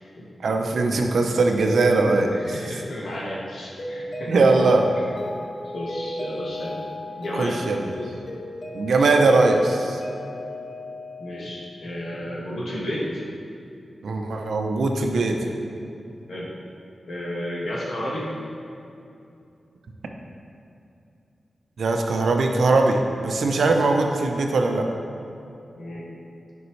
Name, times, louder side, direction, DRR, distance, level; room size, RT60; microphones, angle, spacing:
voice 1, 0.4-2.3 4.3-4.9 7.3-7.8 8.7-10.0 14.0-15.4 21.8-24.9, right 3 dB, 85° right, 3 dB, 0.7 m, -20 dB
voice 2, 2.3-4.3 5.7-6.8 7.2-7.6 11.2-13.2 16.3-16.5 17.1-18.3 25.8-26.1, equal, 80° left, -5 dB, 1.6 m, -32 dB
Mallet percussion, 3.8-11.9, left 1 dB, 45° left, 0.8 m, -35 dB
9.5 x 5.4 x 3.2 m, 2.7 s
wide cardioid pair, 95°, 0 cm